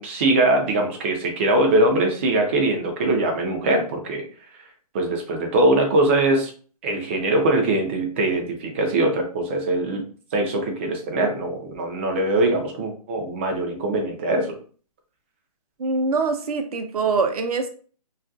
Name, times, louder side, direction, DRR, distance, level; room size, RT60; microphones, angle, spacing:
voice 1, 0.0-4.2 4.9-6.5 6.8-10.0 10.3-14.6, right 2 dB, 20° right, 3 dB, 0.3 m, -22 dB
voice 2, 15.8-17.7, right 4 dB, 65° right, 7 dB, 0.6 m, -23 dB
2.3 x 2.1 x 2.6 m, 0.41 s
hypercardioid pair, 145°, 20 cm